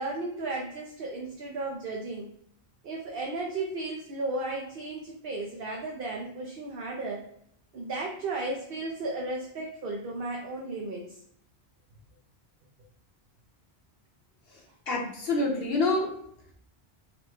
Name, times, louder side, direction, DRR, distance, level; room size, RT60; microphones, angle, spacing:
voice 1, 0.0-2.3 2.8-7.2 7.7-11.2, right 2 dB, 60° right, -1 dB, 0.9 m, -34 dB
voice 2, 14.5-16.1, left 2 dB, 60° left, -1 dB, 1.2 m, -28 dB
4.0 x 2.2 x 4.4 m, 0.69 s
omnidirectional pair, 1.1 m